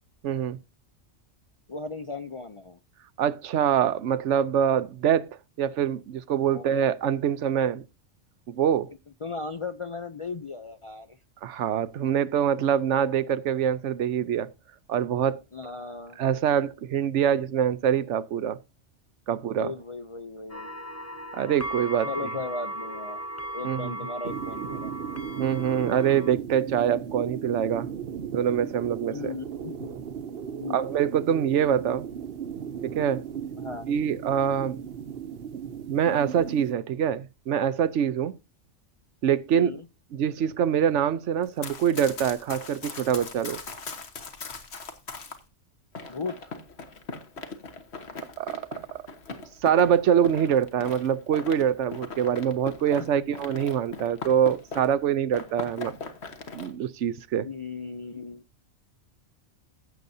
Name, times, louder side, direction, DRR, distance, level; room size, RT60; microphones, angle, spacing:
voice 1, 0.2-0.6 3.2-5.3 5.6-7.8 8.5-8.9 11.4-14.5 14.9-15.4 16.2-18.6 19.3-19.7 21.3-22.3 23.6-23.9 25.4-27.9 28.3-29.3 30.7-32.1 32.8-33.2 33.9-34.8 35.5-35.6 35.9-38.3 39.2-39.7 40.1-43.6 48.4-48.6 48.9-49.0 49.6-56.0 56.5-57.5, right 9 dB, 80° right, 1.0 m, -25 dB
voice 2, 1.7-2.8 6.5-6.7 9.2-11.2 15.5-16.2 19.3-20.7 22.1-24.9 29.1-29.9 30.6-30.8 33.6-33.9 39.5-39.9 46.1-46.5 53.1-53.2 57.4-58.4, left 4 dB, 45° left, 0.4 m, -37 dB
Pentatonic Singing Bowl Scale Demo, 20.5-26.3, right 1 dB, 15° left, 0.7 m, -37 dB
sound 1, 24.2-36.7, right 8 dB, 60° right, 0.9 m, -36 dB
Run, 41.4-45.4 45.9-55.0 55.3-56.7, left 4 dB, 60° left, 1.6 m, -40 dB
15.5 x 7.8 x 2.7 m
omnidirectional pair, 1.2 m